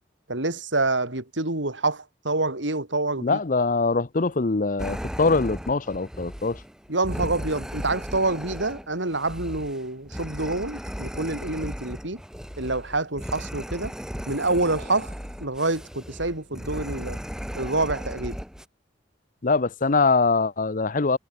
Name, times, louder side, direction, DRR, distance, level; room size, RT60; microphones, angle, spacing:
voice 1, 0.3-3.4 6.9-12.2 12.6-13.9 14.3-15.1 15.4-17.2 17.5-18.4, right 2 dB, 80° right, 4.2 m, -27 dB
voice 2, 3.2-6.6 19.4-21.2, left 3 dB, 45° left, 0.7 m, -23 dB
sound 1, 4.8-18.7, equal, 5° right, 4.9 m, -36 dB
head